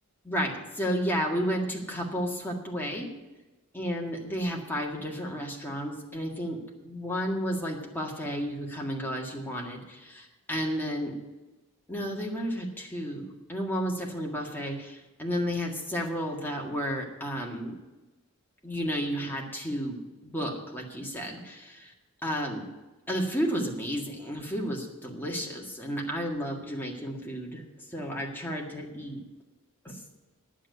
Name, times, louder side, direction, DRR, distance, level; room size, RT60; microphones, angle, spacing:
voice 1, 0.2-3.1 3.7-11.1 11.9-17.7 18.6-20.0 20.2-21.9 22.2-22.6 23.1-27.6 27.9-29.2 29.9-30.0, equal, 10° left, -1 dB, 1.8 m, -32 dB
10.0 x 7.5 x 9.4 m, 1.1 s
head